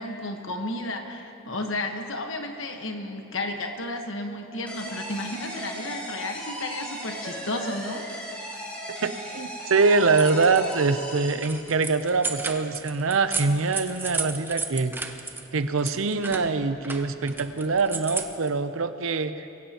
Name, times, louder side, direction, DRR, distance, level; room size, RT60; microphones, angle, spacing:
voice 1, 0.0-8.2, left 2 dB, 70° left, 4 dB, 1.3 m, -33 dB
sound 1, 4.7-12.0, equal, 5° left, 4.2 m, -37 dB
voice 2, 9.0-15.0 15.5-19.5, right 4 dB, 75° right, 11 dB, 0.7 m, -24 dB
sound 2, 10.0-10.7 11.1-15.5 15.8-18.5, right 3 dB, 10° right, 0.6 m, -34 dB
22.0 x 16.0 x 3.0 m, 2.9 s
head